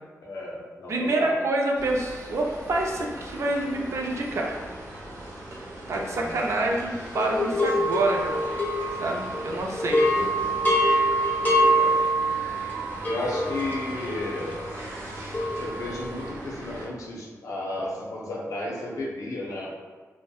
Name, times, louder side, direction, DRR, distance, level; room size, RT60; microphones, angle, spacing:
voice 1, 0.2-1.4 6.0-6.4 11.7-12.0 13.0-14.6 15.6-19.7, left 2 dB, 85° left, -3 dB, 0.5 m, -33 dB
voice 2, 0.9-4.6 5.9-8.5 9.0-10.2, right 2 dB, 60° right, 0 dB, 0.4 m, -27 dB
sound 1, 1.7-16.9, right 1 dB, 85° right, 0.8 m, -39 dB
sound 2, 7.1-9.5 9.8-16.1, equal, 35° left, 0.5 m, -25 dB
2.7 x 2.1 x 2.3 m, 1.4 s
wide cardioid pair, 140°, 6 cm